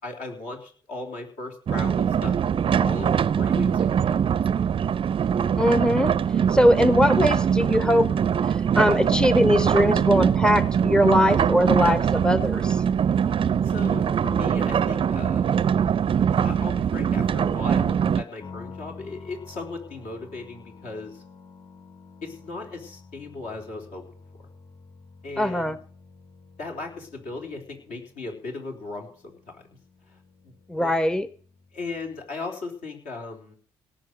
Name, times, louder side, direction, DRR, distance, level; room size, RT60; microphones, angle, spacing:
voice 1, 0.0-2.4 2.8-4.2 13.6-15.6 16.3-21.2 22.2-24.0 25.2-25.8 26.6-29.6 30.1-30.2 30.4-30.9 31.7-33.6, left 3 dB, 65° left, 1 dB, 3.8 m, -37 dB
sound 1, 1.7-18.2, right 8 dB, 40° right, 0.6 m, -22 dB
voice 2, 5.6-6.1 6.5-8.1 8.8-12.8 25.4-25.8 30.7-31.3, equal, 5° left, 15 dB, 0.8 m, -21 dB
sound 2, 18.4-32.2, left 4 dB, 35° left, 6.3 m, -49 dB
17.5 x 5.9 x 7.8 m, 0.43 s
hypercardioid pair, 45°, 13 cm